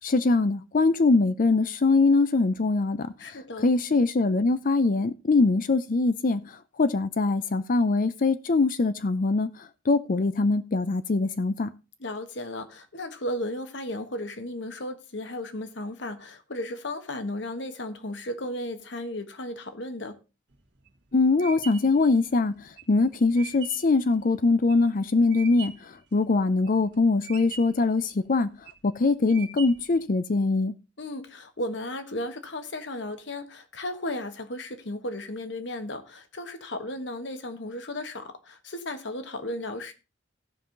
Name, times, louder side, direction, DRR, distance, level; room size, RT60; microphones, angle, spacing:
voice 1, 0.0-3.4 3.6-11.7 21.1-28.5 28.8-30.7, left 3 dB, 45° left, 0.5 m, -23 dB
voice 2, 3.2-3.7 12.0-20.2 31.0-39.9, left 1 dB, 65° left, 1.4 m, -35 dB
sound 1, 20.5-26.0 26.4-26.9 27.2-27.9 28.4-28.9 29.3-30.0, right 6 dB, 65° right, 1.7 m, -42 dB
16.0 x 5.6 x 3.9 m
head